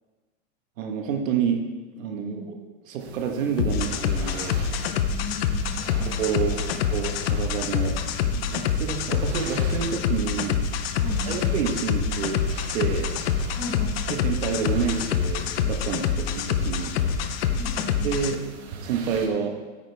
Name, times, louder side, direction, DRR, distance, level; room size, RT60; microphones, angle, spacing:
voice 1, 0.8-1.6 2.0-2.4 2.8-4.7 6.0-6.6 6.9-7.9 8.3-10.6 11.3-13.1 14.1-16.9 18.0-18.4 18.8-19.6, right 7 dB, 75° right, 3 dB, 1.5 m, -28 dB
voice 2, 2.2-2.6 5.1-6.3 11.0-11.5 13.5-14.0 17.5-18.1, left 3 dB, 25° left, -5 dB, 2.5 m, -36 dB
sound 1, 3.0-19.3, right 4 dB, 55° right, 1.2 m, -43 dB
sound 2, 3.6-18.3, left 7 dB, 50° left, 0.6 m, -26 dB
9.4 x 8.9 x 3.4 m, 1.3 s
supercardioid pair, 175°, 40 cm